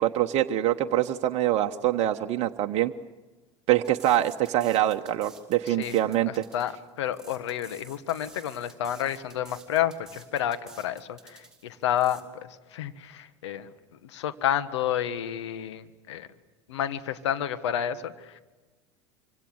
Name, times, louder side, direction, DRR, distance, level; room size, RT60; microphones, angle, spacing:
voice 1, 0.0-2.9 3.7-6.5, right 13 dB, 45° right, 5 dB, 1.1 m, -24 dB
sound 1, 3.8-12.2, right 3 dB, 5° right, 5.2 m, -51 dB
voice 2, 5.8-6.7 7.0-12.2 12.7-13.7 14.0-16.3 16.7-18.4, left 10 dB, 70° left, 11 dB, 1.6 m, -30 dB
26.0 x 25.5 x 8.0 m, 1.2 s
figure-of-eight pair, 80°, 15 cm